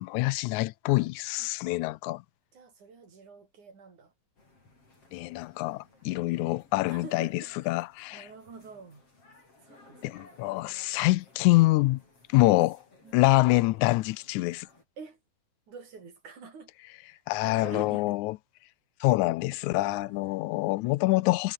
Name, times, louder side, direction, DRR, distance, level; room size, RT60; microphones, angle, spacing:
voice 1, 0.0-2.2 5.1-8.3 10.0-12.0 12.3-12.8 13.1-14.7 17.3-18.4 19.0-21.5, left 19 dB, 85° left, 2.0 m, -25 dB
voice 2, 2.5-4.1 6.1-6.5 6.9-7.9 8.1-9.0 9.6-10.4 13.0-13.2 15.0-15.2 15.7-16.7 17.1-18.2 19.8-20.4, right 5 dB, 85° right, 6.4 m, -47 dB
sound 1, 4.4-14.8, left 3 dB, 50° left, 8.9 m, -59 dB
omnidirectional pair, 3.4 m